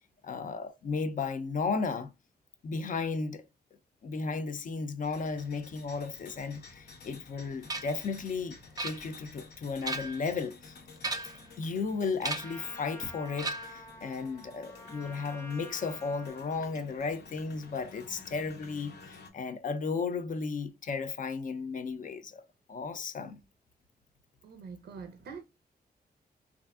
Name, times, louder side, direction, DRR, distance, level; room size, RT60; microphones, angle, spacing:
voice 1, 0.2-2.1 2.6-3.4 4.0-10.7 11.6-22.4 22.7-23.4, left 4 dB, 55° left, 0.4 m, -34 dB
sound 1, 5.0-19.3, left 4 dB, 90° left, 0.7 m, -52 dB
sound 2, 7.7-8.0 8.8-9.4 9.7-10.3 11.0-11.5 12.2-12.6 13.4-13.9, right 2 dB, 25° right, 0.5 m, -36 dB
Trumpet, 12.4-16.7, equal, 15° left, 0.6 m, -49 dB
voice 2, 24.4-25.4, right 5 dB, 85° right, 0.5 m, -44 dB
3.2 x 2.4 x 2.3 m
wide cardioid pair, 105°, 17 cm